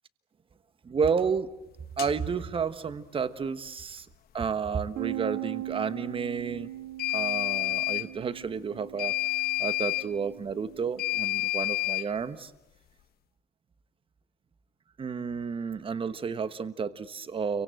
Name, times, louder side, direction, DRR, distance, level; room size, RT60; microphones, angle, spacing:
voice 1, 0.8-1.5 2.0-4.0 4.3-6.7 7.1-9.1 9.6-12.5 15.0-17.6, right 6 dB, 30° right, 13 dB, 1.3 m, -31 dB
sound 1, 2.0-2.1 7.0-8.1 9.0-10.1 11.0-12.1, left 18 dB, 65° left, 1.3 m, -29 dB
Bass guitar, 5.0-11.2, right 16 dB, 70° right, 3.0 m, -40 dB
29.5 x 24.5 x 7.8 m, 0.90 s
cardioid pair, 110°, 17 cm